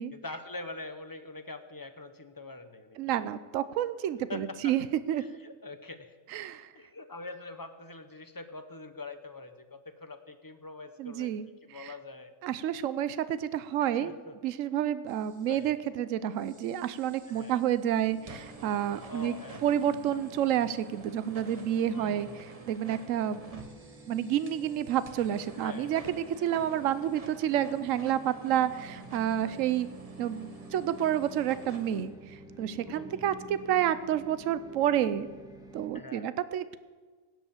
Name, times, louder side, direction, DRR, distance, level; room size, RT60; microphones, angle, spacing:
voice 1, 0.1-3.2 4.3-4.7 5.2-6.2 6.7-12.3 12.7-12.8 13.8-14.3 15.5-15.7 17.3-17.6 19.1-19.9 21.9-22.5 25.5-25.9 26.4-26.8 29.4-29.6 32.9-33.4 35.9-36.3, left 3 dB, 20° left, 9 dB, 0.8 m, -44 dB
voice 2, 3.0-5.2 6.3-6.7 11.0-11.5 11.7-11.9 12.4-14.1 14.4-19.3 19.6-22.3 22.7-23.7 24.1-29.9 30.2-35.3 35.7-36.8, right 10 dB, 75° right, 14 dB, 1.0 m, -29 dB
sound 1, 15.1-15.7 16.4-32.1, right 2 dB, 30° right, 1.2 m, -51 dB
sound 2, 17.9-35.9, right 2 dB, 5° right, 1.4 m, -50 dB
17.5 x 8.1 x 7.2 m, 1.4 s
omnidirectional pair, 1.4 m